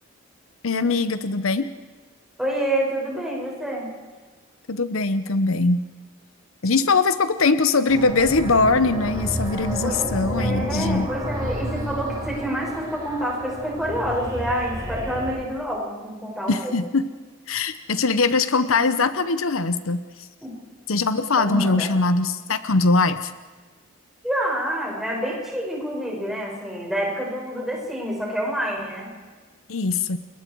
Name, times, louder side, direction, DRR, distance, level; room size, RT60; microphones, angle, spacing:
voice 1, 0.6-1.7 4.7-5.8 6.6-11.1 16.5-17.1 17.5-20.0 20.9-23.3 29.7-30.2, left 3 dB, 70° left, 12 dB, 0.9 m, -21 dB
voice 2, 2.4-3.9 9.8-16.7 20.4-20.6 21.4-21.9 24.2-29.1, equal, ahead, -3 dB, 5.9 m, -28 dB
sound 1, 7.9-15.4, equal, 20° right, 4.7 m, -31 dB
29.0 x 22.0 x 4.7 m, 1.4 s
head